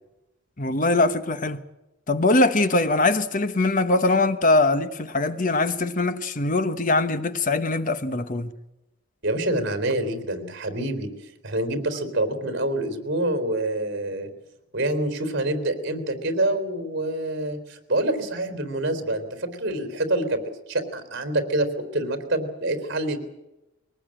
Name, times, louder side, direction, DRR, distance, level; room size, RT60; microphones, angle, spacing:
voice 1, 0.6-1.6 2.1-8.5, left 2 dB, 40° left, 1.1 m, -22 dB
voice 2, 9.2-11.1 11.4-14.3 14.7-20.4 20.7-23.2, right 1 dB, 55° right, 3.9 m, -26 dB
23.0 x 19.0 x 8.9 m
head